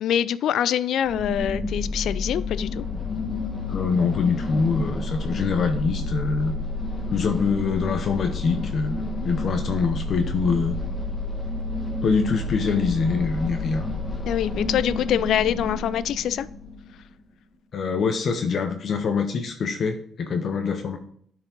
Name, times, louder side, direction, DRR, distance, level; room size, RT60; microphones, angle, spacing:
voice 1, 0.0-2.8 14.3-16.5, left 10 dB, 75° left, 17 dB, 0.3 m, -24 dB
sound 1, 1.0-17.0, left 2 dB, 20° left, 1.4 m, -30 dB
voice 2, 3.7-6.6 7.1-10.8 12.0-13.9 17.7-21.0, left 5 dB, 55° left, 6 dB, 0.7 m, -24 dB
9.1 x 4.8 x 4.0 m, 0.62 s
cardioid pair, 90°, 0 cm